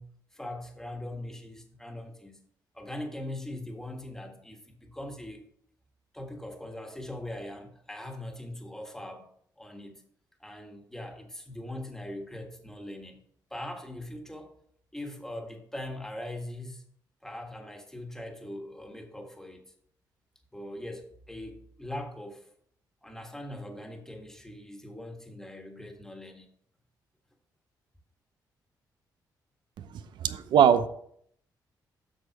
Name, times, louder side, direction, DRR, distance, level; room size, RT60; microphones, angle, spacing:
voice 1, 0.0-2.4 2.7-5.4 6.1-9.3 9.6-10.0 10.4-13.2 13.5-14.5 14.9-16.8 17.2-19.6 20.5-22.5 23.0-26.5, left 1 dB, 5° left, 1.6 m, -41 dB
voice 2, 30.2-30.9, right 9 dB, 85° right, 0.7 m, -20 dB
7.7 x 6.4 x 4.7 m
cardioid pair, 95°, 8 cm